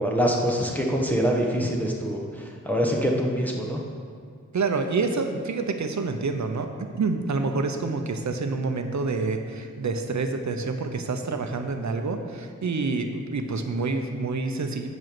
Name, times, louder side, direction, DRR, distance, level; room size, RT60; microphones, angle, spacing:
voice 1, 0.0-3.8, equal, 5° left, -2 dB, 1.2 m, -25 dB
voice 2, 4.5-14.9, right 3 dB, 65° right, 6 dB, 0.8 m, -27 dB
7.8 x 5.5 x 7.7 m, 2.1 s
wide cardioid pair, 90°, 31 cm